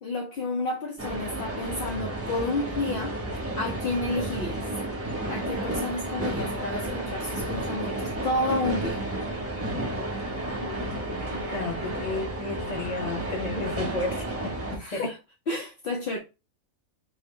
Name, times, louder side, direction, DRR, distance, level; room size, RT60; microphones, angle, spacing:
voice 1, 0.0-3.2 3.6-4.7 5.3-9.0 14.7-15.2 15.5-16.2, left 2 dB, 55° left, 0.6 m, -31 dB
sound 1, 1.0-14.8, right 1 dB, 20° right, 0.4 m, -32 dB
voice 2, 11.1-15.1, left 3 dB, 35° left, 0.9 m, -33 dB
4.4 x 2.0 x 3.5 m
omnidirectional pair, 1.4 m